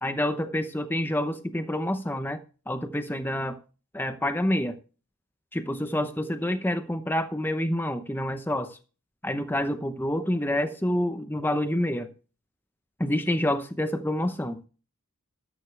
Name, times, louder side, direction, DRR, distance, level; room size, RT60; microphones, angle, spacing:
voice 1, 0.0-2.4 2.7-3.6 3.9-4.8 5.5-8.8 9.2-12.1 13.0-14.6, left 1 dB, 10° left, 0.8 m, -28 dB
13.5 x 11.5 x 3.4 m
head